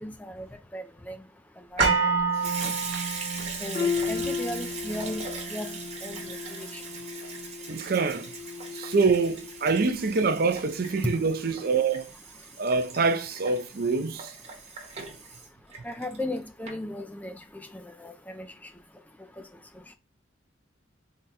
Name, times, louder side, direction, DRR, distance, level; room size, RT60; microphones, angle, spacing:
voice 1, 0.0-0.5 0.7-1.2 1.7-1.8 3.6-5.7 6.0-6.8 15.8-17.4 17.7-18.5, left 1 dB, 10° left, 0.4 m, -36 dB
Water tap faucet / Sink (filling or washing) / Liquid, 1.7-16.4 16.7-16.8, right 4 dB, 35° right, 0.9 m, -39 dB
sound 1, 1.8-9.9 10.2-10.3, right 4 dB, 70° right, 1.2 m, -32 dB
voice 2, 2.6-3.1 3.4-3.6 7.7-8.3 8.7-12.1 12.6-14.3, right 4 dB, 50° right, 0.5 m, -26 dB
sound 2, 3.7-9.7 10.1-10.3 11.1-11.2, left 6 dB, 45° left, 1.1 m, -35 dB
3.8 x 2.1 x 4.1 m
head